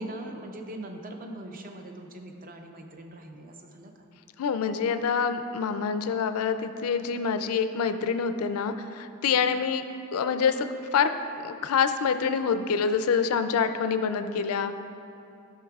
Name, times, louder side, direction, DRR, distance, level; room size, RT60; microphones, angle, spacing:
voice 1, 0.0-4.1, right 1 dB, 40° right, 3 dB, 0.6 m, -41 dB
voice 2, 4.4-9.8 10.1-11.1 11.4-14.7, left 6 dB, 75° left, 9 dB, 0.4 m, -26 dB
12.5 x 5.7 x 2.3 m, 2.6 s
head